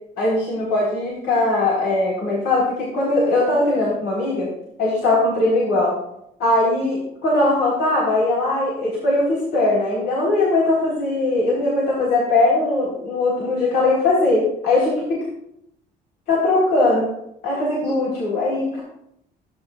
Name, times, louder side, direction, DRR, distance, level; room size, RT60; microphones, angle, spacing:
voice 1, 0.2-4.5 4.8-6.0 6.4-15.2 16.3-17.1 17.4-18.8, left 2 dB, 80° left, -5 dB, 4.3 m, -20 dB
15.5 x 9.5 x 2.5 m, 0.78 s
cardioid pair, 110°, 17 cm